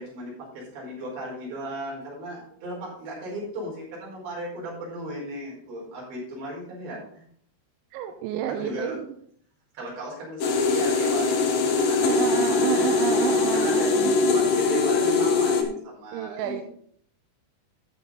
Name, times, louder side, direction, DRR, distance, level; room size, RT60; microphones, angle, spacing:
voice 1, 0.0-7.3 8.5-9.0 9.7-13.0 13.5-16.6, right 1 dB, 60° right, -4 dB, 6.9 m, -36 dB
voice 2, 7.9-9.1 12.0-14.2 16.1-16.6, right 11 dB, 80° right, 5 dB, 2.9 m, -30 dB
sound 1, 10.4-15.6, left 4 dB, 70° left, 2.1 m, -22 dB
13.5 x 7.1 x 3.9 m, 0.63 s
omnidirectional pair, 5.8 m